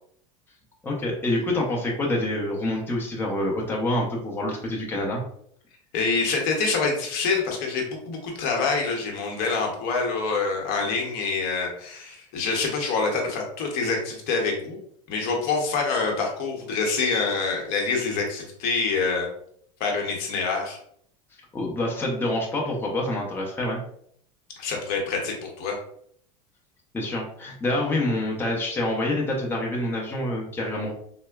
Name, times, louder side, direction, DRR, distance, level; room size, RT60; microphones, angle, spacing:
voice 1, 0.8-5.2 21.5-23.8 26.9-30.9, left 1 dB, 10° left, -2 dB, 0.8 m, -27 dB
voice 2, 5.9-14.8 15.1-19.3 19.8-20.8 24.6-25.8, left 4 dB, 60° left, 1 dB, 0.9 m, -26 dB
4.2 x 2.1 x 2.3 m, 0.66 s
supercardioid pair, 105°, 18 cm